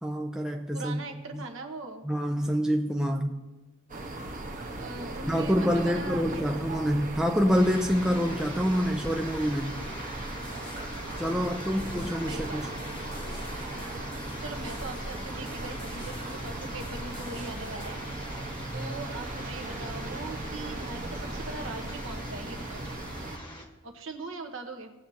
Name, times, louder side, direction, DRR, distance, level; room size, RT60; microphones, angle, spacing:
voice 1, 0.0-1.0 1.3-1.4 2.0-3.4 5.3-9.8 11.2-12.7, equal, 5° right, 2 dB, 0.4 m, -27 dB
voice 2, 0.7-2.1 4.8-6.4 11.2-11.6 12.0-12.6 14.4-18.0 18.7-23.0 23.8-24.9, right 3 dB, 60° right, 4 dB, 1.1 m, -41 dB
sound 1, 3.9-23.4, right 2 dB, 35° right, 1.1 m, -37 dB
sound 2, 7.5-23.6, left 1 dB, 20° left, 1.1 m, -44 dB
sound 3, 10.3-17.9, left 1 dB, 85° left, 2.1 m, -49 dB
17.5 x 7.7 x 2.8 m, 1.1 s
head